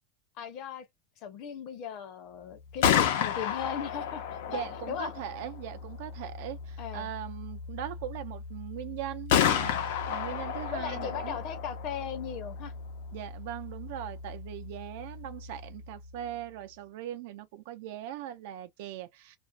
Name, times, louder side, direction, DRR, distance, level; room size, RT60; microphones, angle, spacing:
voice 1, 0.4-0.9 1.2-4.2 4.5-5.1 6.8-7.1 10.7-12.7, left 8 dB, 45° left, 0.6 m, -37 dB
Gunshot gunfire, 2.6-16.4, left 8 dB, 80° left, 0.6 m, -33 dB
voice 2, 4.5-11.4 13.1-19.4, right 12 dB, 65° right, 0.6 m, -40 dB
2.4 x 2.0 x 2.5 m
supercardioid pair, 175°, 0 cm